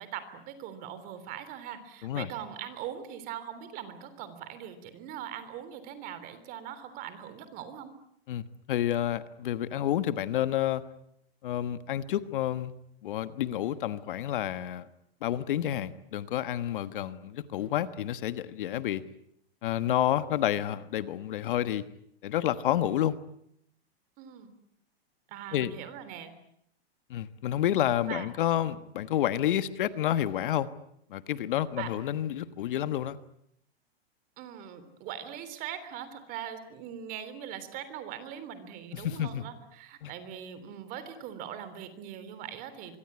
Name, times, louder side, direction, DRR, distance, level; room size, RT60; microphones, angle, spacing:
voice 1, 0.0-7.9 24.2-24.5 25.3-26.3 28.1-28.3 31.8-32.2 34.4-43.0, right 9 dB, 25° right, 12 dB, 3.4 m, -41 dB
voice 2, 8.3-10.8 11.4-12.7 13.0-14.9 15.2-19.0 19.6-21.8 22.2-23.1 25.5-25.7 27.1-30.7 31.1-33.2 38.9-39.4 40.0-40.1, left 11 dB, 55° left, 13 dB, 1.4 m, -29 dB
25.0 x 23.5 x 9.8 m, 0.73 s
supercardioid pair, 165°, 31 cm